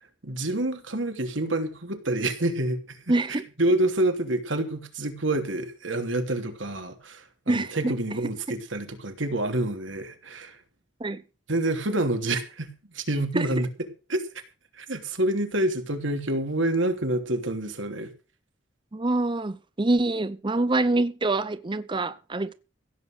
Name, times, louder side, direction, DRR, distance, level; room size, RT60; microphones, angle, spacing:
voice 1, 0.2-10.6 11.5-13.7 14.1-14.2 14.7-18.1, right 1 dB, 85° right, 3.0 m, -27 dB
voice 2, 3.1-3.5 7.5-7.9 11.0-11.2 13.3-13.5 18.9-22.5, right 2 dB, 25° right, 0.6 m, -25 dB
16.0 x 8.3 x 6.5 m
head